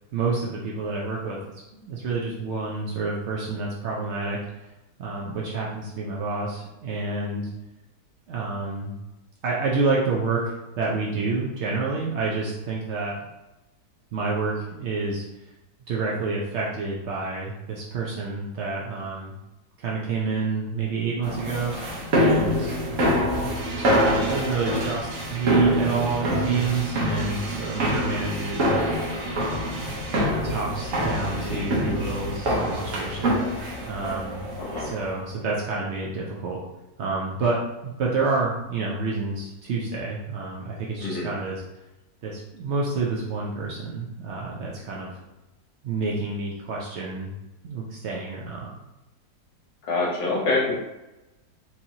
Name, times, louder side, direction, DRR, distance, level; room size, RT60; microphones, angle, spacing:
voice 1, 0.1-1.4 1.7-4.7 5.0-7.5 8.3-8.9 9.4-13.2 14.1-15.2 15.9-19.4 19.8-21.9 22.2-22.7 23.0-29.2 29.6-33.4 33.9-34.5 34.8-36.6 37.0-41.6 42.2-45.1 45.8-47.3 47.6-48.7, right 3 dB, 85° right, -4 dB, 0.6 m, -29 dB
sound 1, 21.2-35.1, equal, 55° right, 1.2 m, -25 dB
voice 2, 31.2-31.8 34.6-34.9 41.0-41.3 49.9-50.7, left 3 dB, 75° left, -2 dB, 1.6 m, -27 dB
4.4 x 2.8 x 2.7 m, 0.97 s
omnidirectional pair, 1.9 m